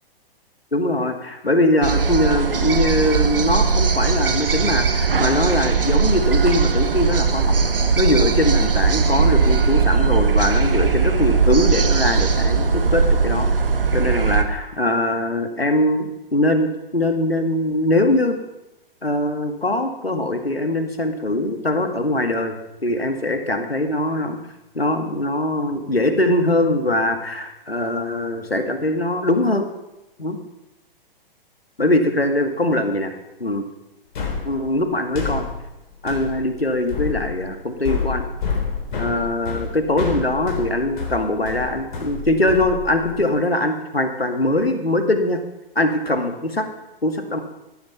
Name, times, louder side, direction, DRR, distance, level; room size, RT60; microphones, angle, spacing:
voice 1, 0.7-7.6 8.0-13.5 13.9-18.4 19.0-24.4 24.7-29.7 30.2-30.4 31.8-33.1 33.4-33.7 34.4-35.5 36.0-38.2 39.0-45.4 45.8-46.7 47.0-47.4, left 1 dB, 85° left, 6 dB, 2.2 m, -22 dB
sound 1, 1.8-14.4, right 5 dB, 70° right, 1.7 m, -19 dB
sound 2, 34.2-43.3, left 5 dB, 55° left, 3.7 m, -29 dB
16.0 x 12.0 x 5.7 m, 0.97 s
figure-of-eight pair, 115°, 29 cm